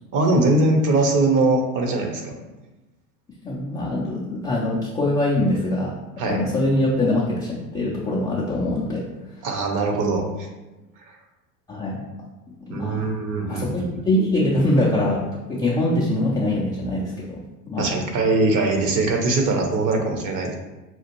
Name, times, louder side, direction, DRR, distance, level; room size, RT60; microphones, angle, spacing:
voice 1, 0.1-2.3 6.2-6.4 9.4-10.5 11.1-11.2 12.7-14.0 17.8-20.5, right 2 dB, 40° right, 3 dB, 0.9 m, -21 dB
voice 2, 3.4-5.9 6.2-9.0 11.7-12.0 12.6-13.1 13.5-15.2 15.5-17.9, left 1 dB, 10° left, -8 dB, 0.3 m, -23 dB
5.7 x 2.4 x 3.0 m, 1.1 s
hypercardioid pair, 85°, 49 cm